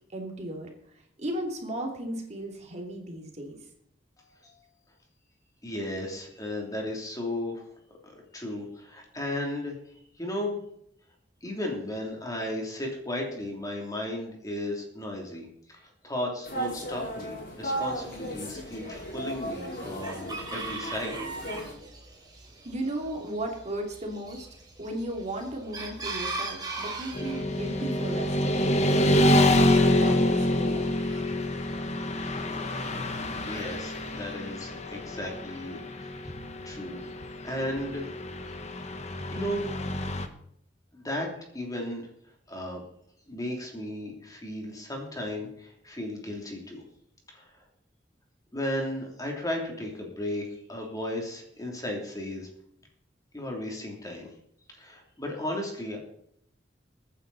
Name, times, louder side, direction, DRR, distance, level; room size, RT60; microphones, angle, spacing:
voice 1, 0.1-0.7 1.2-3.6 22.6-24.5 24.8-28.6 29.0-31.0, right 1 dB, 40° right, 1 dB, 3.0 m, -35 dB
voice 2, 5.6-7.6 8.0-10.6 11.4-21.1 33.5-36.1 36.6-38.2 39.3-39.6 40.9-41.3 41.5-42.1 42.5-42.8 43.3-46.8 47.3-47.5 48.5-52.5 53.3-54.3 54.8-56.0, left 1 dB, 20° left, 0 dB, 3.1 m, -35 dB
sound 1, 16.5-21.7, right 1 dB, 55° left, 5.1 m, -35 dB
Chicken rooster, 17.7-34.3, right 3 dB, 25° right, 3.5 m, -42 dB
Motorcycle / Traffic noise roadway noise, 27.1-40.3, left 1 dB, 40° left, 1.2 m, -27 dB
22.5 x 9.4 x 4.2 m, 0.71 s
head